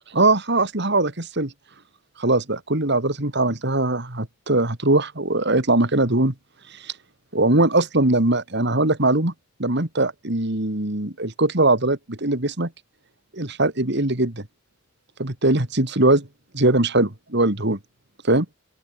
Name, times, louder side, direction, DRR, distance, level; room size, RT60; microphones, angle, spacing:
voice 1, 0.1-1.5 2.2-6.3 6.7-6.9 7.3-9.3 9.6-12.7 13.3-14.4 15.2-16.3 16.5-17.8 18.2-18.5, right 2 dB, 55° right, 2.9 m, -21 dB
open air
head